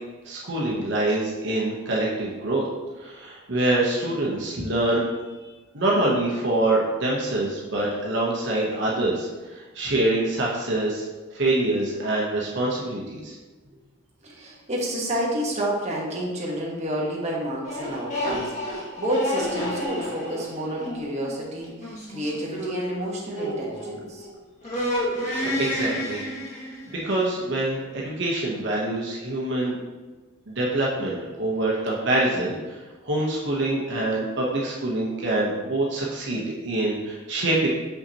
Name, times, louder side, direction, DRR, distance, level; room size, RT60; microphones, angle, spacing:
voice 1, 0.2-2.7 3.0-5.0 5.7-11.0 11.3-13.3 25.4-26.2 26.9-29.8 30.5-32.8 33.0-37.7, right 2 dB, 60° right, -4 dB, 1.0 m, -25 dB
voice 2, 14.2-24.3, right 1 dB, 35° right, -4 dB, 1.2 m, -30 dB
sound 1, 17.6-24.3 24.6-27.0, equal, 35° left, 1.6 m, -30 dB
6.5 x 5.6 x 2.9 m, 1.2 s
head